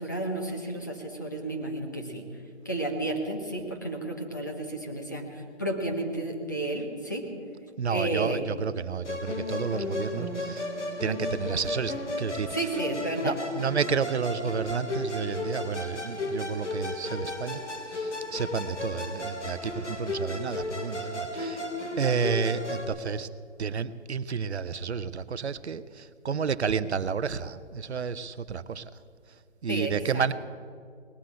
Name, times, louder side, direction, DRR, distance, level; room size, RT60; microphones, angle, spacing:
voice 1, 0.0-2.3 2.6-7.3 7.9-8.4 12.5-13.4 29.7-30.2, right 1 dB, 15° left, 2 dB, 0.9 m, -32 dB
voice 2, 7.8-10.7 11.0-12.6 13.2-17.6 17.9-21.6 22.0-23.3 23.6-28.9 29.6-30.3, right 6 dB, 65° right, 15 dB, 0.7 m, -31 dB
Musical instrument, 9.0-22.9, left 2 dB, 85° left, 2.7 m, -34 dB
19.5 x 7.8 x 8.8 m, 2.2 s
hypercardioid pair, 175°, 35 cm